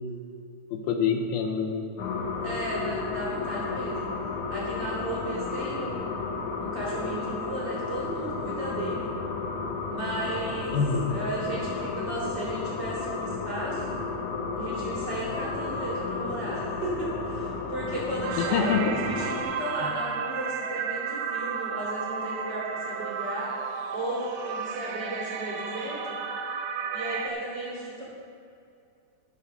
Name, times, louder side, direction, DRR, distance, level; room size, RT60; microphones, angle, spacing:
voice 1, 0.7-1.8 10.7-11.1 18.4-19.0 19.8-19.9, left 6 dB, 85° left, 3 dB, 2.7 m, -26 dB
sound 1, 2.0-19.4, left 4 dB, 70° left, 2.1 m, -33 dB
voice 2, 2.4-4.1 4.5-6.2 6.6-9.1 9.9-10.8 11.1-14.0 14.5-23.6 23.9-26.2 26.9-28.0, right 1 dB, 35° right, -6 dB, 2.6 m, -34 dB
sound 2, 18.2-27.3, right 6 dB, 90° right, 2.6 m, -33 dB
12.0 x 6.2 x 6.7 m, 2.4 s
omnidirectional pair, 4.3 m